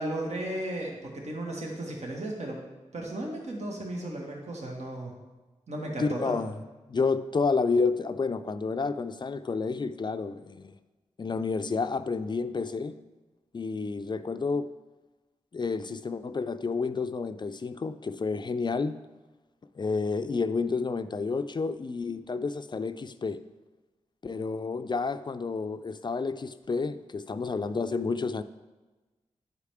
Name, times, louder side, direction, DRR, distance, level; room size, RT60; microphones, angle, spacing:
voice 1, 0.0-2.6 2.9-5.1 5.7-6.4, right 1 dB, 70° right, -1 dB, 1.4 m, -35 dB
voice 2, 6.0-6.6 6.9-10.7 11.2-12.9 13.5-14.7 15.5-18.9 19.8-23.4 24.2-28.4, left 4 dB, 40° left, 11 dB, 0.4 m, -30 dB
10.0 x 4.8 x 3.4 m, 1.2 s
cardioid pair, 50°, 12 cm